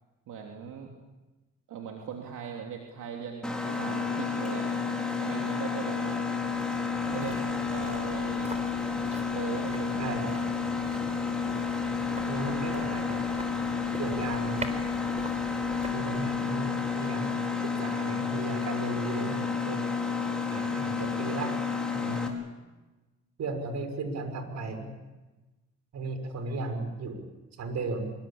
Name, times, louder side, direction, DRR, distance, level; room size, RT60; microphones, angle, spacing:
voice 1, 0.3-0.9 1.7-4.7 5.2-6.2 7.0-8.6 9.3-10.5, right 7 dB, 80° right, 1 dB, 3.3 m, -39 dB
Mechanisms, 3.4-22.3, left 5 dB, 5° left, 5.2 m, -31 dB
sound 1, 5.8-18.6 18.9-19.0, right 2 dB, 20° right, 4.1 m, -46 dB
voice 2, 7.0-7.4 10.0-10.3 12.3-13.3 14.0-14.7 15.9-19.9 20.5-21.5 21.9-22.2 23.4-24.9 25.9-27.2 27.6-28.1, right 3 dB, 60° right, 7 dB, 6.0 m, -35 dB
25.5 x 23.5 x 8.8 m, 1.1 s
cardioid pair, 90°, 30 cm